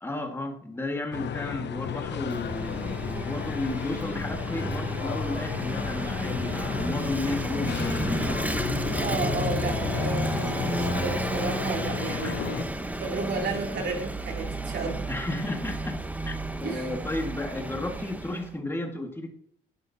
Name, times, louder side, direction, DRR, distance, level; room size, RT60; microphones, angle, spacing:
voice 1, 0.0-8.4 12.2-12.3 15.1-19.3, left 2 dB, 10° left, 2 dB, 1.9 m, -33 dB
sound 1, 1.1-12.6, left 9 dB, 65° left, 1.0 m, -33 dB
Vehicle / Engine, 1.9-18.5, right 1 dB, 10° right, 1.0 m, -32 dB
voice 2, 9.0-12.7 13.0-15.0 16.6-16.9, right 4 dB, 55° right, 1 dB, 3.1 m, -32 dB
11.5 x 11.0 x 2.8 m, 0.62 s
cardioid pair, 90°, 20 cm